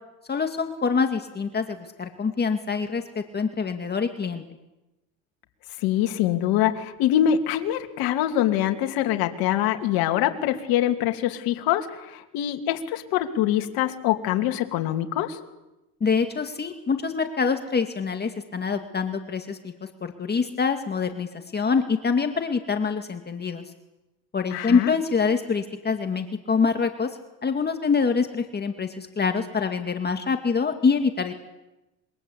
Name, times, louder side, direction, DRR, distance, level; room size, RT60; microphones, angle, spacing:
voice 1, 0.3-4.4 16.0-23.6 24.3-31.3, left 5 dB, 25° left, 6 dB, 2.2 m, -25 dB
voice 2, 5.8-15.4 24.5-24.9, left 11 dB, 75° left, 5 dB, 3.1 m, -24 dB
27.0 x 24.0 x 8.6 m, 0.98 s
supercardioid pair, 105°, 36 cm